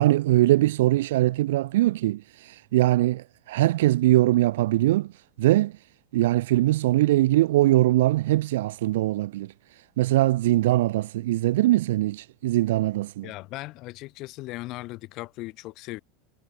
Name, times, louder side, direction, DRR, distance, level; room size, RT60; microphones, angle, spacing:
voice 1, 0.0-5.1 5.4-5.7 6.1-9.5 10.0-13.3, right 16 dB, 80° right, 0.7 m, -22 dB
voice 2, 13.2-16.0, left 20 dB, 50° left, 3.3 m, -38 dB
supercardioid pair, 110°, 0 cm